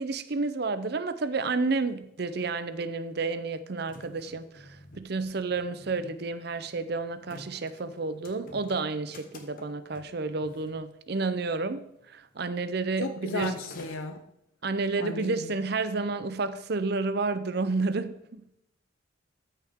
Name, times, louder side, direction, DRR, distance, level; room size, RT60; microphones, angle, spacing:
voice 1, 0.0-13.6 14.6-18.4, right 3 dB, 50° right, 0.6 m, -30 dB
sound 1, 1.5-1.6 1.7-2.6 3.2-11.5 11.8-12.1 12.4-12.7 13.0-14.0, left 1 dB, 45° left, 1.2 m, -50 dB
voice 2, 13.0-14.2 15.0-15.5, left 3 dB, 80° left, 0.7 m, -34 dB
13.5 x 6.5 x 3.6 m
head